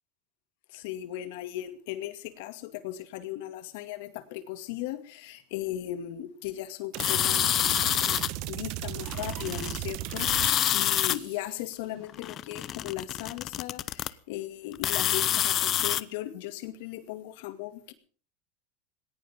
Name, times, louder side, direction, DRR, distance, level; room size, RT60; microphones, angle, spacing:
voice 1, 0.7-17.9, left 13 dB, 70° left, 2.2 m, -37 dB
sound 1, 6.9-11.4, right 13 dB, 55° right, 1.2 m, -36 dB
sound 2, 7.0-8.3 9.1-9.8 10.1-11.2 12.1-14.1 14.7-16.0, left 12 dB, 35° left, 0.8 m, -27 dB
19.5 x 18.5 x 3.7 m
supercardioid pair, 150°, 0 cm